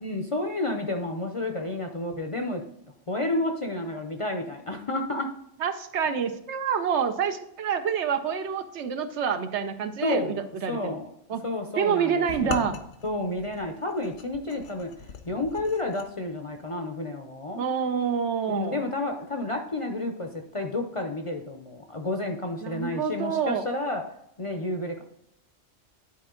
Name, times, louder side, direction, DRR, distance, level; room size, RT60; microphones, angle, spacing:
voice 1, 0.0-2.6 3.1-5.3 10.0-10.4 10.7-11.1 11.4-12.7 13.0-14.9 15.3-17.6 18.5-24.0 24.4-25.0, left 2 dB, 35° left, 4 dB, 0.5 m, -30 dB
voice 2, 5.6-11.0 11.3-11.4 11.8-12.7 17.6-18.8 22.6-23.6, right 7 dB, 75° right, 9 dB, 1.0 m, -27 dB
sound 1, 12.3-16.1, left 5 dB, 80° left, 1.0 m, -39 dB
10.5 x 4.3 x 3.7 m, 0.77 s
omnidirectional pair, 1.2 m